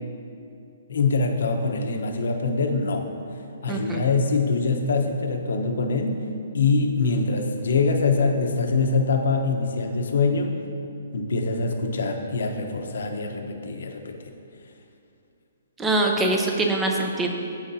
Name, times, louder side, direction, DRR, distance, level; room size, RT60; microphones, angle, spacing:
voice 1, 0.9-3.0 3.6-6.2 6.5-10.5 11.1-14.2, left 4 dB, 75° left, 4 dB, 0.9 m, -24 dB
voice 2, 3.7-4.0 15.8-17.3, right 2 dB, 10° right, 1 dB, 0.7 m, -23 dB
14.5 x 5.1 x 2.7 m, 2.5 s
hypercardioid pair, 165°, 0 cm